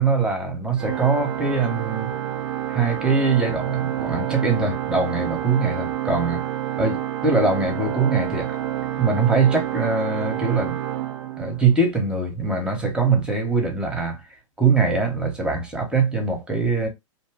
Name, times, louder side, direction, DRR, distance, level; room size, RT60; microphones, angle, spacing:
voice 1, 0.0-2.1 2.7-6.5 6.8-8.6 9.0-10.8 11.4-14.2 14.6-16.9, right 4 dB, 5° right, 1.0 m, -22 dB
Organ, 0.8-11.9, right 11 dB, 60° right, 0.5 m, -29 dB
2.7 x 2.2 x 3.4 m
hypercardioid pair, 125°, 16 cm